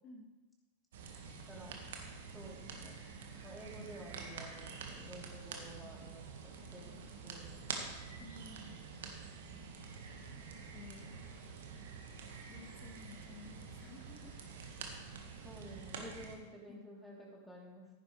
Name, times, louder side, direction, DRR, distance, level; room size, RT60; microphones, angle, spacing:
sound 1, 0.9-16.3, right 5 dB, 60° right, 1.6 m, -47 dB
voice 1, 1.5-1.8 2.3-3.0 3.4-7.6 15.4-17.9, right 1 dB, ahead, -3 dB, 3.2 m, -52 dB
voice 2, 8.2-9.0 10.7-11.1 12.5-14.4 16.4-16.9, left 4 dB, 35° left, 5 dB, 1.5 m, -54 dB
15.0 x 10.5 x 3.3 m, 1.1 s
figure-of-eight pair, 90°, 0 cm